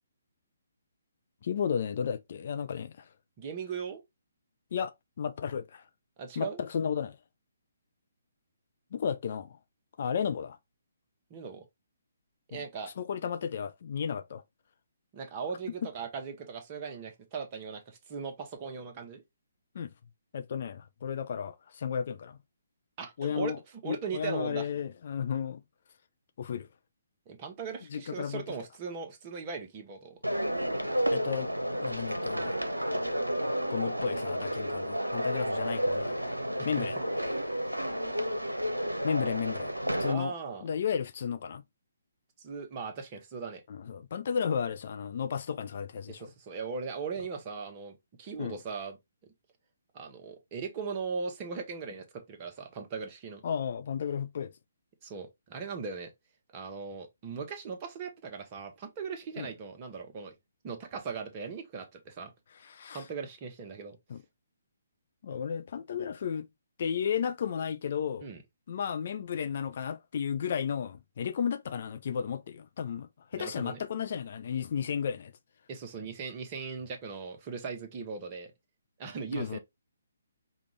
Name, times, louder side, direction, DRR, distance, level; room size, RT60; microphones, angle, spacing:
voice 1, 1.4-3.1 4.7-4.9 5.2-5.8 6.4-7.2 8.9-9.6 10.0-10.6 12.5-12.6 13.0-14.4 19.7-19.9 20.3-22.4 23.2-23.6 23.8-25.6 26.4-26.7 27.9-28.4 31.1-31.5 31.8-32.5 33.7-36.2 36.7-36.9 39.0-39.7 40.0-40.3 40.6-41.6 43.7-46.3 48.4-48.6 53.4-54.5 59.4-59.5 62.6-63.0 64.1-64.2 65.2-66.5 66.8-68.3 68.7-75.3 79.3-79.6, left 7 dB, 45° left, 0.4 m, -33 dB
voice 2, 3.4-4.0 6.2-6.6 11.3-11.6 12.5-12.9 15.1-19.2 23.0-23.5 23.8-24.7 27.3-30.2 36.6-36.9 40.0-40.6 42.4-43.6 46.1-49.0 49.9-53.4 55.0-56.1 56.5-60.3 60.6-62.3 62.9-64.0 68.2-68.4 73.3-73.8 75.7-78.5 79.0-79.6, right 5 dB, 30° right, 1.0 m, -39 dB
sound 1, 30.2-40.1, equal, 90° right, 0.7 m, -31 dB
5.1 x 2.4 x 3.1 m
figure-of-eight pair, 135°, 0 cm